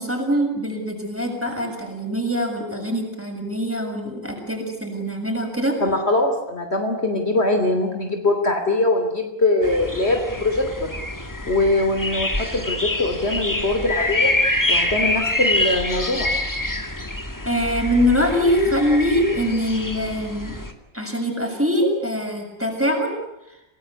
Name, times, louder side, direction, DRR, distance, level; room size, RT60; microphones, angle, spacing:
voice 1, 0.0-5.8 17.5-20.6 20.9-23.1, equal, 10° right, 2 dB, 7.0 m, -23 dB
voice 2, 5.8-10.9 11.5-14.3 14.7-16.3, left 2 dB, 45° left, 4 dB, 3.3 m, -22 dB
sound 1, 9.6-20.7, left 1 dB, 15° left, 2.3 m, -26 dB
28.5 x 19.5 x 9.7 m, 0.90 s
omnidirectional pair, 1.5 m